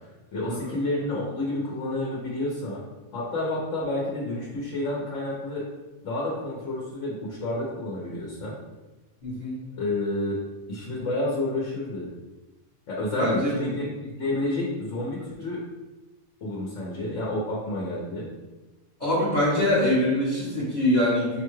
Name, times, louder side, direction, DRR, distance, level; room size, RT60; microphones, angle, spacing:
voice 1, 0.3-2.8 3.1-5.7 6.0-8.6 9.8-10.4 10.7-12.1 12.9-15.6 16.4-18.3, left 1 dB, 75° left, -4 dB, 1.2 m, -30 dB
voice 2, 9.2-9.6 13.2-13.7 19.0-21.4, left 1 dB, 40° left, -8 dB, 1.0 m, -24 dB
5.6 x 2.3 x 3.1 m, 1.2 s
omnidirectional pair, 1.3 m